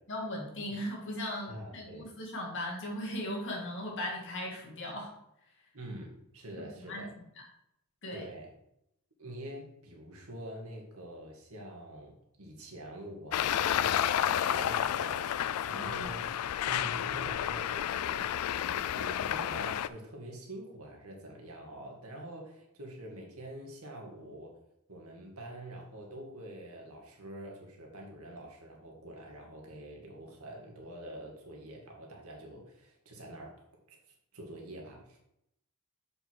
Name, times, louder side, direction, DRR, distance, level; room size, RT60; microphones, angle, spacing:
voice 1, 0.1-5.1 6.6-7.1 8.0-8.3 15.8-16.2, left 1 dB, 60° left, -1 dB, 2.2 m, -38 dB
voice 2, 1.5-2.1 5.7-7.1 8.1-8.5 9.2-16.3 16.6-18.3 18.7-24.5 24.9-33.6 33.9-35.2, right 1 dB, 80° right, 0 dB, 2.1 m, -46 dB
Traffic noise roadway noise, 13.3-19.9, left 10 dB, 90° left, 0.3 m, -31 dB
6.9 x 5.4 x 4.7 m, 0.80 s
head